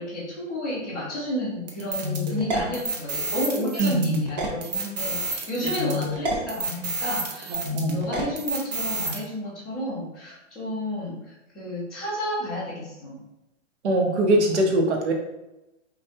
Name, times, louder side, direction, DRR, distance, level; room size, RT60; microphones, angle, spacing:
voice 1, 0.0-13.2, left 1 dB, ahead, -14 dB, 0.7 m, -31 dB
sound 1, 1.7-9.2, right 1 dB, 35° right, 0.6 m, -29 dB
voice 2, 3.8-4.2 7.5-8.0 13.8-15.1, right 1 dB, 60° right, 2 dB, 0.9 m, -22 dB
5.4 x 2.4 x 2.8 m, 0.95 s
hypercardioid pair, 170°, 38 cm